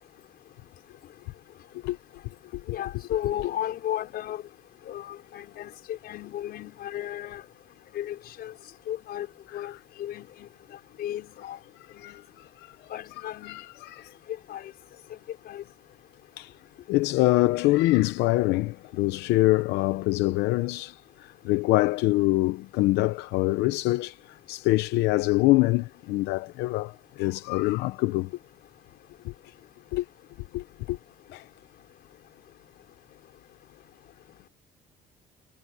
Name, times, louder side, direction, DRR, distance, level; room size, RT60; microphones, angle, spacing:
voice 1, 2.7-4.4 4.9-7.4 7.9-8.5 8.9-9.3 9.5-9.7 10.0-10.5 11.0-11.6 12.0-12.2 12.9-13.6 14.5-14.7 15.5-15.6, left 12 dB, 65° left, 5.0 m, -34 dB
voice 2, 12.0-12.7 13.4-14.1 16.4-16.5 16.9-28.3 29.2-29.3 29.9-30.1 30.5-31.0 31.3-31.4, left 19 dB, 90° left, 0.8 m, -25 dB
cardioid pair, 110°, 17 cm